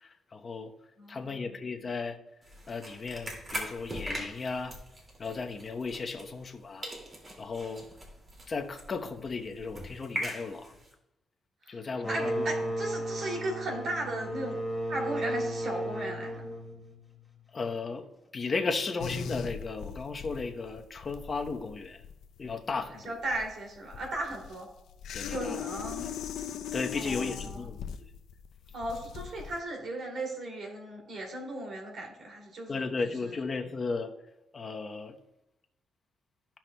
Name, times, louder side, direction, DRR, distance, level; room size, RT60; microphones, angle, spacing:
voice 1, 0.0-0.7 1.1-2.2 2.7-4.8 5.2-6.9 7.4-7.8 8.5-10.7 11.7-12.4 17.5-18.1 18.3-22.0 22.4-23.1 25.1-25.6 26.0-26.1 26.7-27.8 32.7-34.1 34.5-35.1, left 4 dB, 40° left, 4 dB, 0.9 m, -35 dB
voice 2, 1.0-1.6 11.6-11.8 12.1-14.6 14.9-16.5 22.9-24.7 25.3-26.1 26.9-27.6 28.7-32.9 33.2-33.4, right 1 dB, 65° right, 0 dB, 2.6 m, -36 dB
Syrup bottle, 2.4-6.6 6.8-10.9, equal, 35° right, 2.3 m, -41 dB
sound 1, 12.0-17.5, right 1 dB, 5° left, 1.7 m, -34 dB
sound 2, 19.0-29.6, left 8 dB, 80° left, 0.5 m, -39 dB
14.0 x 5.8 x 2.2 m, 0.90 s
cardioid pair, 90°, 0 cm